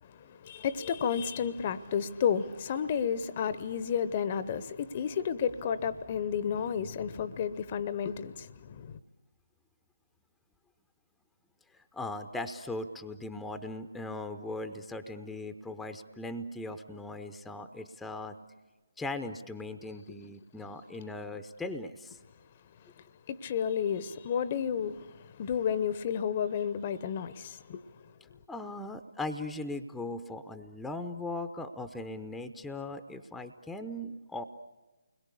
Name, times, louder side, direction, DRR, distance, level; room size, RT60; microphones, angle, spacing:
voice 1, 0.0-9.0 22.8-28.4, left 7 dB, 35° left, 0.9 m, -32 dB
voice 2, 11.7-18.3 19.0-22.2 28.5-34.4, left 2 dB, 5° left, 0.8 m, -39 dB
29.5 x 21.5 x 8.4 m
figure-of-eight pair, 145°, 0 cm